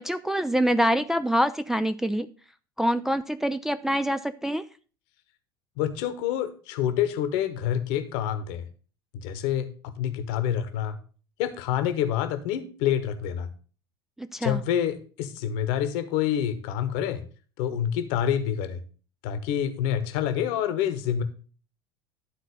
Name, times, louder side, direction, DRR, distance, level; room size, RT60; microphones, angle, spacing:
voice 1, 0.0-2.3 2.8-4.6 14.2-14.6, equal, 5° right, 8 dB, 0.4 m, -25 dB
voice 2, 5.8-8.6 9.1-11.0 11.4-13.5 14.4-17.2 17.6-18.8 19.2-21.2, left 10 dB, 55° left, 10 dB, 1.1 m, -27 dB
11.5 x 4.1 x 6.7 m, 0.39 s
figure-of-eight pair, 70°, 12 cm